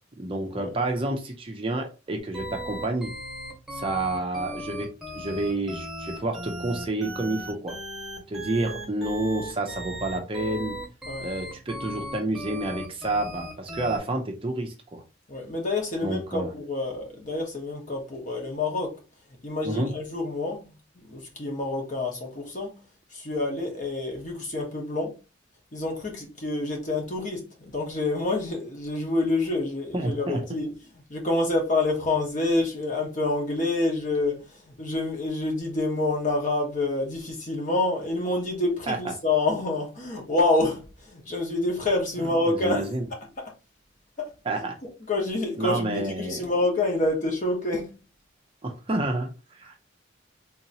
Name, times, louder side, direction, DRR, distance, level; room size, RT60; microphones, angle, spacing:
voice 1, 0.2-3.1 3.7-4.9 5.1-7.8 8.3-10.8 11.2-15.0 16.0-16.5 19.6-19.9 29.9-30.6 38.9-39.0 42.2-43.0 44.5-44.8 45.6-46.4 48.6-49.8, right 2 dB, 25° right, 0.5 m, -29 dB
sound 1, 2.3-14.0, equal, ahead, 1.1 m, -37 dB
voice 2, 15.3-18.9 19.4-20.7 21.1-22.8 23.1-25.2 25.7-30.7 31.1-42.9 44.2-44.3 45.1-48.0, left 2 dB, 40° left, 1.1 m, -27 dB
3.7 x 2.8 x 2.8 m
head